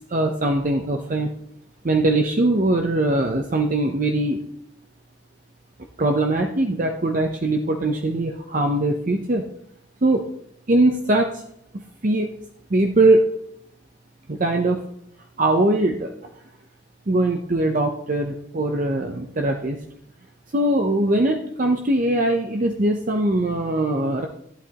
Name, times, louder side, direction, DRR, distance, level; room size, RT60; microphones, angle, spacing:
voice 1, 0.1-1.3 1.8-4.4 6.0-9.4 10.0-10.2 10.7-11.4 12.0-12.3 12.7-13.3 14.3-14.8 15.4-16.1 17.1-19.8 20.5-24.3, right 2 dB, 40° right, 3 dB, 0.6 m, -21 dB
11.5 x 11.5 x 2.9 m, 0.72 s
head